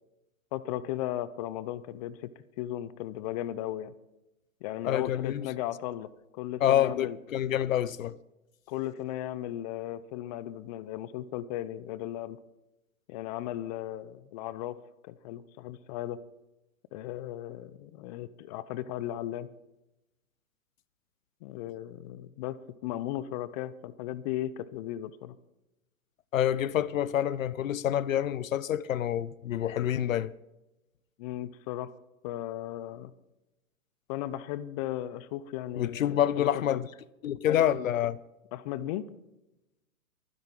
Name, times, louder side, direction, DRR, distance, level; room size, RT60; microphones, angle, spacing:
voice 1, 0.5-2.3 2.6-3.9 4.6-7.2 8.7-12.4 13.1-14.8 15.0-16.2 16.9-19.5 21.4-25.4 31.2-31.9 32.2-33.1 34.1-36.8 38.5-39.1, left 13 dB, 30° left, 0.6 m, -36 dB
voice 2, 4.8-5.5 6.6-8.2 26.3-30.3 35.8-36.9 37.2-38.2, left 11 dB, 65° left, 0.8 m, -27 dB
24.5 x 10.0 x 3.8 m
hypercardioid pair, 130°, 43 cm